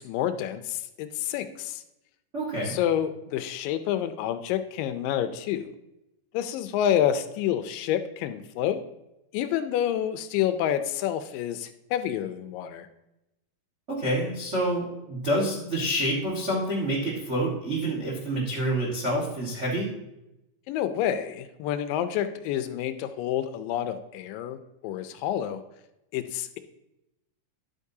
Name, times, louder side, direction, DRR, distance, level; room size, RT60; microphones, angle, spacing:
voice 1, 0.0-1.8 2.6-5.7 6.3-8.8 9.3-12.9 20.7-25.6 26.1-26.6, left 10 dB, 80° left, 10 dB, 2.2 m, -28 dB
voice 2, 2.3-2.8 13.9-19.9, right 1 dB, 75° right, -4 dB, 0.6 m, -27 dB
11.0 x 8.3 x 2.7 m, 0.90 s
omnidirectional pair, 4.1 m